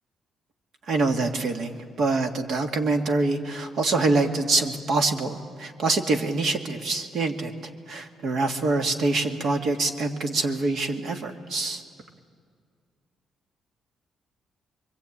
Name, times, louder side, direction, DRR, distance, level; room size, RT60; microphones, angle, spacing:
voice 1, 0.9-7.5 7.9-11.8, right 3 dB, 60° right, 4 dB, 2.0 m, -25 dB
27.0 x 23.5 x 8.7 m, 2.1 s
cardioid pair, 135°, 0 cm